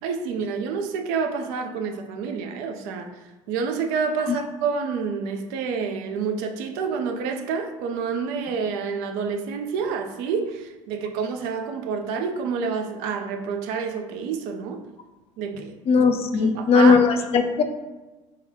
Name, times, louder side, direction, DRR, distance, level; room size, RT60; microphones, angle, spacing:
voice 1, 0.0-3.1 3.5-14.8 15.4-15.8 16.3-16.9, right 5 dB, 60° right, 5 dB, 0.4 m, -28 dB
voice 2, 15.9-17.6, left 5 dB, 40° left, 6 dB, 0.4 m, -18 dB
3.1 x 2.1 x 3.8 m, 1.1 s
figure-of-eight pair, 60°, 17 cm